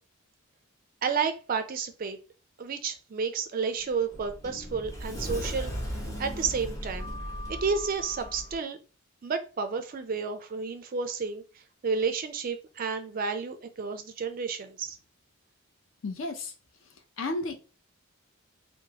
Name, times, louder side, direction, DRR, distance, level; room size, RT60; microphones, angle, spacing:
voice 1, 1.0-2.2 2.6-5.7 6.2-7.1 7.5-8.8 9.2-11.4 11.8-15.0, right 5 dB, 40° right, 8 dB, 0.3 m, -31 dB
Sliding door, 3.7-8.6, equal, 15° left, 0.6 m, -37 dB
voice 2, 16.0-16.5 17.2-17.6, left 2 dB, 60° left, 4 dB, 0.5 m, -32 dB
3.0 x 2.1 x 2.8 m, 0.34 s
head